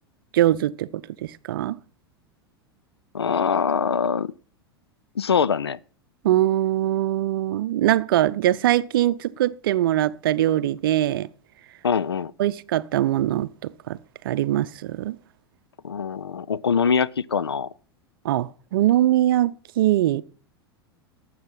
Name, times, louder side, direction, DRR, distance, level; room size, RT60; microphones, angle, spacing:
voice 1, 0.3-1.8 6.2-11.3 12.4-14.0 14.2-15.2 18.2-20.2, right 13 dB, 60° right, 0.6 m, -22 dB
voice 2, 3.1-4.3 5.2-5.8 11.8-12.3 15.8-17.7, left 6 dB, 80° left, 0.5 m, -23 dB
12.0 x 7.7 x 5.6 m
figure-of-eight pair, 90°, 13 cm